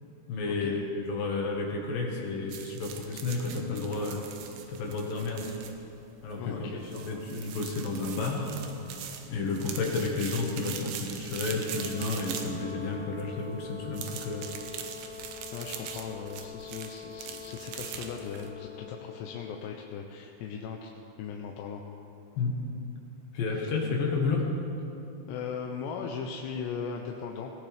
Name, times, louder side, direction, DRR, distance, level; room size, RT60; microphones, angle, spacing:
voice 1, 0.3-4.2 4.7-5.5 6.2-8.5 9.3-14.5 22.4-22.6 23.3-24.5, left 3 dB, 60° left, 0 dB, 3.0 m, -31 dB
sound 1, 2.5-18.5, right 8 dB, 90° right, 3.2 m, -42 dB
voice 2, 6.4-7.2 15.5-20.9 21.2-21.8 23.5-23.7 25.3-27.5, left 6 dB, 85° left, 1 dB, 2.9 m, -38 dB
Brass instrument, 11.6-19.6, left 8 dB, 65° right, 3.9 m, -44 dB
18.5 x 18.0 x 3.4 m, 2.8 s
omnidirectional pair, 4.8 m